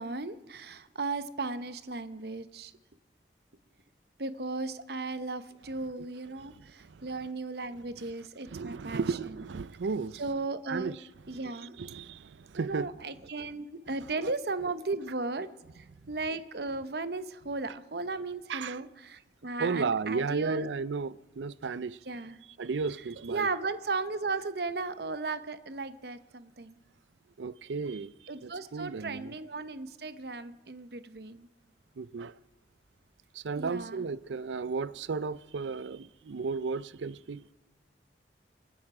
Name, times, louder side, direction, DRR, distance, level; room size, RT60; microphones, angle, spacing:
voice 1, 0.0-2.7 4.2-9.4 10.2-10.9 11.3-11.7 12.6-15.5 15.7-20.7 22.1-22.4 23.3-26.8 28.3-31.5 33.6-34.1, right 3 dB, 65° right, 0.8 m, -36 dB
voice 2, 8.5-10.2 10.7-10.9 11.8-12.9 18.5-18.8 19.6-22.0 22.6-23.5 27.4-28.1 28.4-29.3 32.0-32.3 33.3-37.4, right 4 dB, 90° right, 0.5 m, -34 dB
28.0 x 10.5 x 4.9 m
head